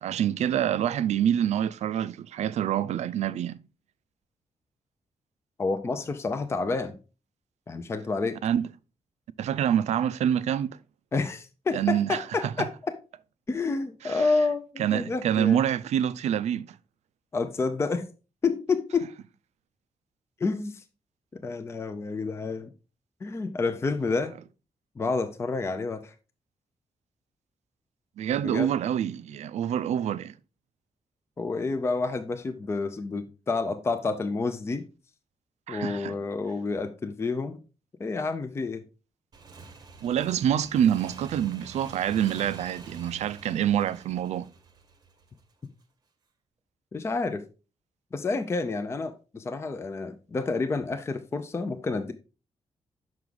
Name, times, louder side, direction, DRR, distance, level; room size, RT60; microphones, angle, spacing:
voice 1, 0.0-3.6 8.4-8.7 9.4-10.8 11.7-12.7 14.0-14.3 14.8-16.7 28.2-30.3 35.7-36.1 40.0-44.5, right 10 dB, 90° right, 0.4 m, -26 dB
voice 2, 5.6-7.0 7.7-8.4 11.1-13.0 13.5-15.6 17.3-18.1 18.4-19.1 20.4-20.8 21.3-22.7 23.2-24.3 25.0-26.1 28.3-28.7 31.4-34.9 35.7-37.6 38.0-38.8 46.9-47.4 48.1-52.1, left 3 dB, 25° left, 0.4 m, -29 dB
Motorcycle / Engine, 39.3-45.7, right 4 dB, 35° right, 0.8 m, -47 dB
5.9 x 4.8 x 3.8 m
wide cardioid pair, 165°, 11 cm